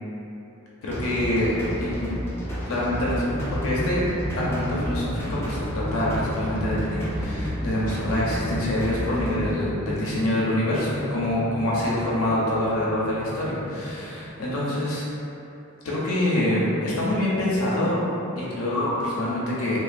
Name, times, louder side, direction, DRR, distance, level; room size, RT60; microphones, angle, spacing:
voice 1, 0.8-1.5 1.8-2.2 2.7-3.2 3.5-4.0 4.4-15.0 15.8-18.0 18.4-19.8, left 1 dB, 75° left, -6 dB, 0.5 m, -25 dB
sound 1, 0.9-9.5, equal, 10° left, 0.3 m, -32 dB
sound 2, 3.3-14.3, equal, 50° right, 0.6 m, -34 dB
2.9 x 2.0 x 2.5 m, 2.9 s
head